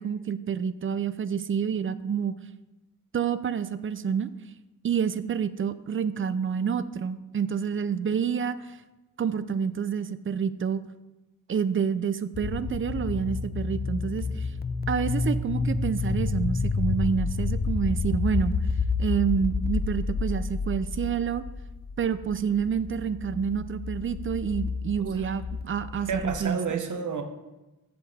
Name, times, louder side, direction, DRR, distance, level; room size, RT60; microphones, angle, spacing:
voice 1, 0.0-2.3 3.1-4.3 4.8-8.8 9.2-10.8 11.5-14.5 14.9-18.6 19.0-21.4 22.0-26.8, right 7 dB, 35° right, 14 dB, 0.4 m, -28 dB
sound 1, 12.3-26.4, left 4 dB, 30° left, 0.4 m, -30 dB
voice 2, 26.1-27.2, right 6 dB, 55° right, 6 dB, 0.9 m, -30 dB
7.8 x 7.4 x 3.4 m, 1.0 s
wide cardioid pair, 105°, 36 cm